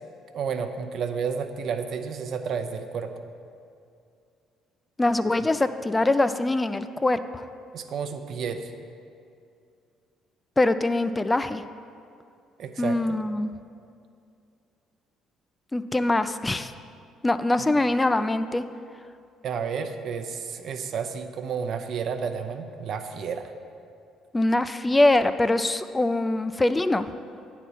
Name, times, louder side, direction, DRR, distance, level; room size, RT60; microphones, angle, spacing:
voice 1, 0.3-3.1 7.7-8.7 12.6-13.2 17.6-17.7 19.4-23.5, right 6 dB, 60° right, 7 dB, 0.6 m, -31 dB
voice 2, 5.0-7.5 10.6-11.6 12.8-13.5 15.7-16.7 17.2-18.6 24.3-27.1, left 2 dB, 20° left, 11 dB, 0.3 m, -23 dB
8.8 x 4.1 x 6.3 m, 2.5 s
hypercardioid pair, 55°, 0 cm